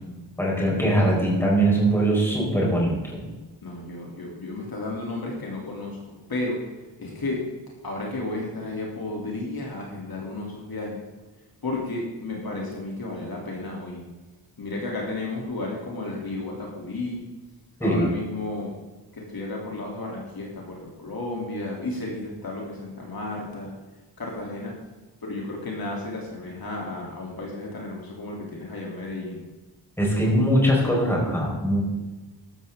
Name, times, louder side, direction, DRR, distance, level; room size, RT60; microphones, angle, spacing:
voice 1, 0.4-3.2 17.8-18.1 30.0-31.8, right 1 dB, 5° left, -3 dB, 4.8 m, -21 dB
voice 2, 3.6-6.6 7.0-7.4 7.8-11.0 11.6-14.0 14.6-17.2 17.8-18.7 19.1-23.7 24.2-24.7 25.2-29.5, left 2 dB, 50° left, -2 dB, 3.3 m, -33 dB
13.5 x 12.5 x 3.8 m, 1.2 s
wide cardioid pair, 140°, 45 cm